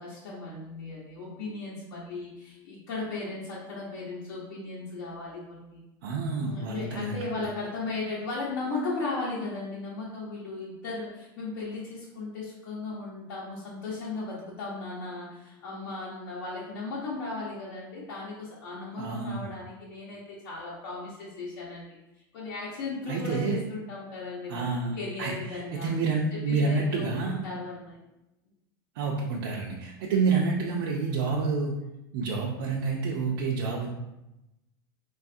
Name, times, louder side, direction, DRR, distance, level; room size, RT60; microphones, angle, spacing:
voice 1, 0.0-5.8 6.4-22.0 22.3-25.9 26.3-28.0, left 3 dB, 75° left, -7 dB, 0.8 m, -36 dB
voice 2, 6.0-7.3 19.0-19.5 23.1-23.6 24.5-27.4 29.0-31.7 32.1-33.9, right 4 dB, 65° right, -2 dB, 0.4 m, -28 dB
3.2 x 2.3 x 2.6 m, 0.94 s
supercardioid pair, 145°, 12 cm